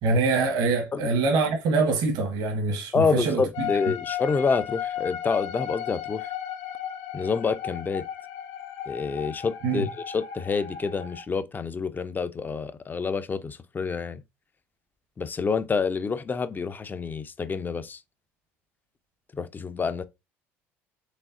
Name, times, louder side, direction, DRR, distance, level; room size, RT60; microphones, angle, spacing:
voice 1, 0.0-3.7 9.6-9.9, right 3 dB, 65° right, 1.2 m, -24 dB
voice 2, 2.9-6.3 7.1-8.1 8.9-14.2 15.2-18.0 19.3-20.0, left 5 dB, 25° left, 0.5 m, -28 dB
sound 1, 3.5-11.2, left 10 dB, 65° left, 0.7 m, -35 dB
4.9 x 3.4 x 2.6 m
hypercardioid pair, 65°, 7 cm